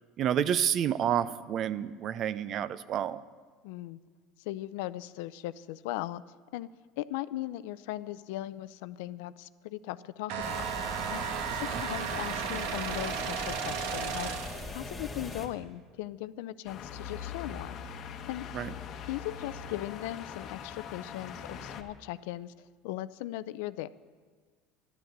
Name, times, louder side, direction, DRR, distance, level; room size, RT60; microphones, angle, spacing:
voice 1, 0.2-3.2 11.7-11.8 18.5-18.7, right 9 dB, 40° right, 16 dB, 0.5 m, -29 dB
voice 2, 3.6-4.0 4.4-6.2 6.5-6.7 7.0-10.6 11.1-11.2 11.5-14.3 14.7-17.8 18.2-18.5 19.1-23.9, left 15 dB, 80° left, 16 dB, 0.5 m, -38 dB
sound 1, 10.3-14.7, right 7 dB, 75° right, 1.2 m, -34 dB
sound 2, 10.4-15.5, left 2 dB, 15° left, 2.1 m, -41 dB
sound 3, 16.7-21.8, left 7 dB, 40° left, 1.1 m, -42 dB
13.0 x 12.0 x 8.0 m, 1.5 s
cardioid pair, 155°, 0 cm